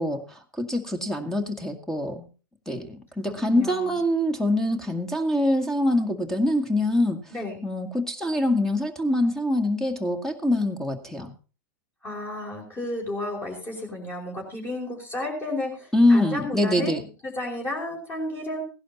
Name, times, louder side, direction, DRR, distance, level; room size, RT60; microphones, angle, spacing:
voice 1, 0.0-2.3 2.7-7.2 7.6-11.3 15.9-17.0, left 1 dB, 5° left, 8 dB, 1.8 m, -24 dB
voice 2, 3.3-4.0 7.3-7.6 12.0-17.0 17.2-18.6, left 1 dB, 20° left, 0 dB, 5.0 m, -32 dB
16.5 x 11.0 x 4.2 m, 0.35 s
hypercardioid pair, 100°, 11 cm